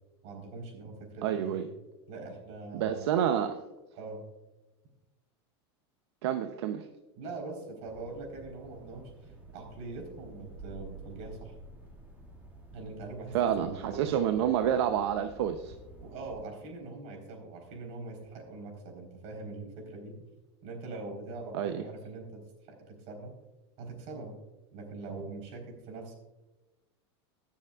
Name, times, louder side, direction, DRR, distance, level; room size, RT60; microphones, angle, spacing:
voice 1, 0.2-1.7 2.1-3.3 4.0-4.2 7.2-11.6 12.7-14.2 16.0-20.2 20.6-22.4 22.7-23.3 23.8-24.3 24.7-26.1, right 3 dB, 50° right, 2 dB, 4.1 m, -42 dB
voice 2, 1.2-1.7 2.7-3.5 6.2-6.9 13.3-15.7 21.5-21.8, right 9 dB, 75° right, 7 dB, 0.7 m, -28 dB
sound 1, 7.9-16.4, right 2 dB, 10° right, 2.2 m, -50 dB
21.0 x 7.2 x 2.4 m, 1.1 s
supercardioid pair, 130°, 14 cm